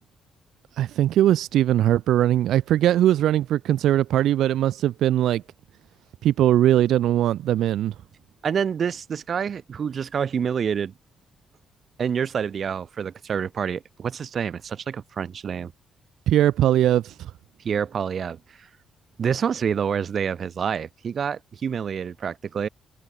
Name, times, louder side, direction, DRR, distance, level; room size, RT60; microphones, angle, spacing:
voice 1, 0.8-5.4 6.2-7.9 16.3-17.3, right 12 dB, 80° right, 1.1 m, -20 dB
voice 2, 8.4-10.9 12.0-15.7 17.6-18.7 19.2-22.7, right 7 dB, 40° right, 1.8 m, -27 dB
open air
cardioid pair, 180°, 0 cm